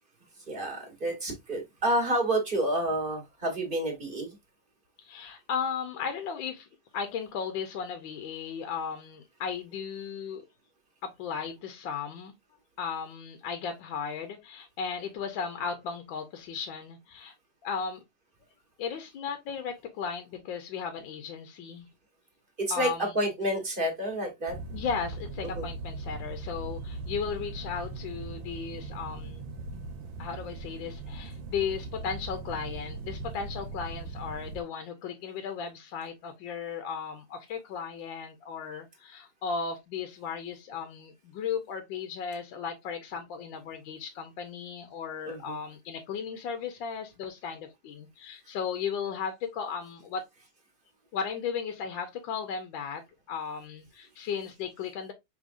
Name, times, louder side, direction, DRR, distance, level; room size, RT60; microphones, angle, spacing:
voice 1, 0.5-4.3 22.6-24.6 25.4-25.6 45.2-45.6, right 1 dB, 30° right, 1.4 m, -29 dB
voice 2, 5.0-6.7 6.9-10.4 11.0-12.3 12.8-17.3 17.6-18.0 18.8-21.9 22.7-23.1 24.7-29.4 30.2-50.2 51.1-53.0 53.3-55.1, left 6 dB, 80° left, 1.4 m, -35 dB
sound 1, 24.5-34.6, right 3 dB, 80° right, 1.4 m, -39 dB
4.9 x 3.5 x 2.5 m
omnidirectional pair, 2.1 m